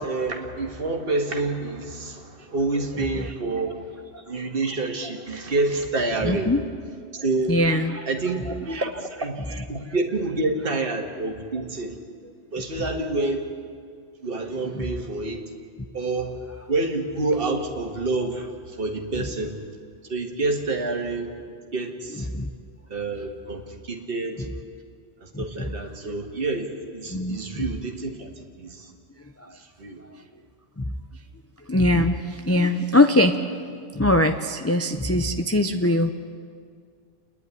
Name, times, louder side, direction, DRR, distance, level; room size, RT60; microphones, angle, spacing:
voice 1, 0.0-6.5 7.1-7.5 8.1-12.0 12.5-13.5 14.2-15.4 15.9-16.4 16.7-19.6 20.1-21.3 21.7-22.3 22.9-24.5 25.2-28.9 29.8-30.0, right 2 dB, 50° right, 2 dB, 2.0 m, -28 dB
voice 2, 6.2-6.6 7.5-8.1 8.7-8.9 14.7-14.8 19.2-19.3 22.2-22.5 25.3-25.4 26.0-26.1 27.1-27.6 29.4-29.6 30.8-31.0 31.7-33.4 33.9-36.1, left 1 dB, 15° left, 6 dB, 0.6 m, -22 dB
28.5 x 10.5 x 9.7 m, 2.2 s
omnidirectional pair, 1.2 m